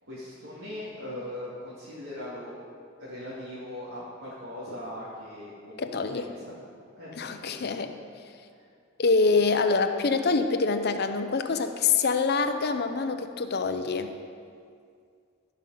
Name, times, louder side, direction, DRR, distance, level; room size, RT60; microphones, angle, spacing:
voice 1, 0.0-2.6 3.0-6.5 7.0-7.8, left 1 dB, 80° right, -11 dB, 2.5 m, -40 dB
voice 2, 5.8-6.3 7.2-7.9 9.0-14.1, left 4 dB, 55° left, 8 dB, 0.6 m, -25 dB
15.0 x 5.4 x 5.6 m, 2.3 s
head